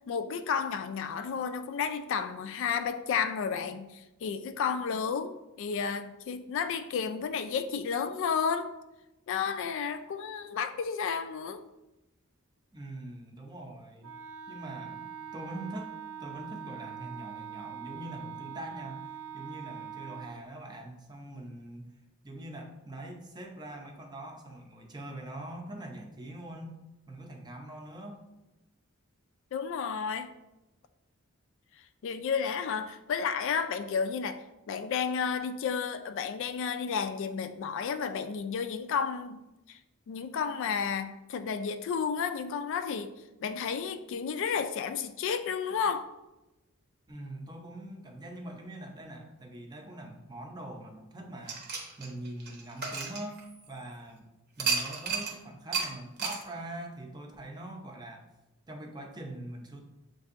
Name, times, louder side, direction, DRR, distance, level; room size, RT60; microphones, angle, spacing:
voice 1, 0.1-8.7 9.3-11.6 29.5-30.3 32.0-39.4 39.7-39.8 40.1-43.1 43.4-46.1, left 6 dB, 60° left, 0.3 m, -32 dB
voice 2, 12.7-14.2 14.5-15.9 16.2-21.9 22.2-26.8 27.1-28.2 47.1-51.6 52.0-54.3 54.6-58.3 58.7-59.8, right 1 dB, 20° right, 0.5 m, -43 dB
Wind instrument woodwind instrument, 14.0-20.4, right 9 dB, 75° right, 0.5 m, -43 dB
sound 1, 51.5-53.9 54.6-55.3 55.7-55.9 56.2-56.4, right 5 dB, 50° right, 0.8 m, -33 dB
7.2 x 2.6 x 2.5 m
head